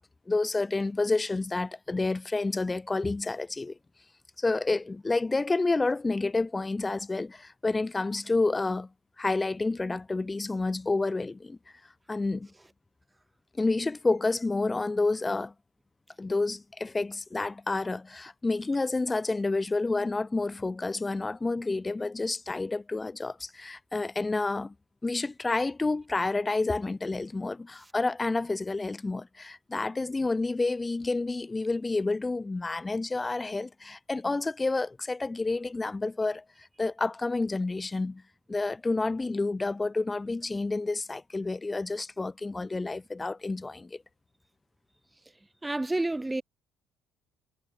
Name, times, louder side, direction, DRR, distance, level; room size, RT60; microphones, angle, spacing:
voice 1, 0.3-3.8 4.4-8.9 9.2-11.6 12.1-12.5 13.6-15.5 16.2-24.7 25.0-38.2 38.5-44.0, left 3 dB, 20° left, 2.1 m, -29 dB
voice 2, 45.6-46.4, right 2 dB, 15° right, 3.8 m, -29 dB
hypercardioid pair, 60°, 0 cm